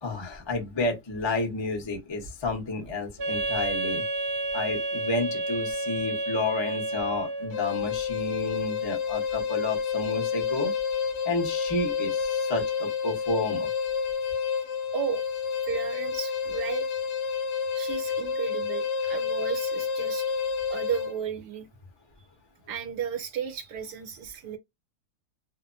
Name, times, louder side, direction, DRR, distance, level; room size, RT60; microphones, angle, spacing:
voice 1, 0.0-4.0 4.5-10.7 11.2-13.7, left 2 dB, 25° left, 0.5 m, -31 dB
Wind instrument woodwind instrument, 3.2-7.6, right 2 dB, 60° right, 0.6 m, -30 dB
sound 1, 7.5-21.2, left 6 dB, 70° left, 1.1 m, -29 dB
voice 2, 15.7-16.8 17.7-20.4 20.7-21.7 22.7-24.6, right 8 dB, 80° right, 1.2 m, -34 dB
2.7 x 2.1 x 2.5 m
omnidirectional pair, 1.8 m